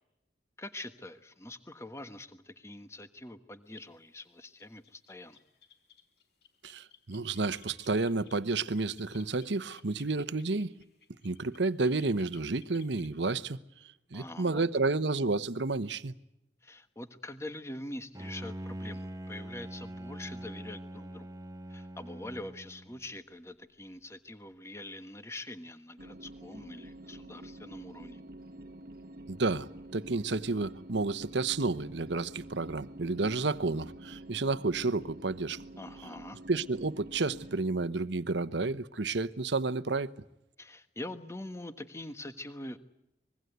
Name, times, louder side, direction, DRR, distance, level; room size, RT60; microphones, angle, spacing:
voice 1, 0.6-5.4 14.1-14.6 16.6-21.3 21.7-28.2 35.8-36.4 40.6-42.8, left 1 dB, 15° left, 1.3 m, -44 dB
sound 1, 3.7-3.9 4.2-4.3 4.6-13.1, left 7 dB, 65° left, 4.1 m, -60 dB
voice 2, 6.6-10.7 11.2-13.6 14.1-16.1 29.3-35.6 36.5-40.1, right 3 dB, 80° right, 1.0 m, -31 dB
Bowed string instrument, 18.1-23.1, right 1 dB, 20° right, 0.9 m, -43 dB
sound 2, 26.0-37.6, right 1 dB, 50° right, 1.3 m, -48 dB
25.0 x 22.0 x 8.1 m
head